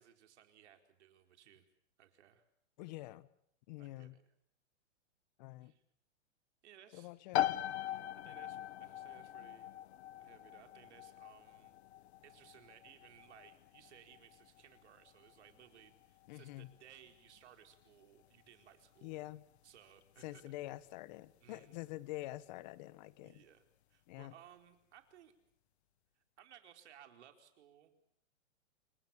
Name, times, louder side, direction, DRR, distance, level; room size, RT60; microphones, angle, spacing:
voice 1, 0.0-1.7 2.0-2.4 3.8-4.2 5.6-5.8 6.6-7.1 8.2-9.8 10.2-11.7 12.2-19.2 19.6-20.4 21.4-21.8 23.2-23.6 23.9-25.3 26.2-27.9, right 10 dB, 65° right, 6 dB, 4.4 m, -61 dB
voice 2, 2.8-3.3 3.7-4.2 5.4-5.7 6.9-7.6 16.3-16.7 19.0-19.4 20.2-23.4 24.1-24.3, left 17 dB, 35° left, 17 dB, 1.3 m, -46 dB
sound 1, 7.3-21.8, left 13 dB, 60° left, 1.2 m, -43 dB
29.0 x 25.5 x 7.2 m, 0.71 s
hypercardioid pair, 155°, 37 cm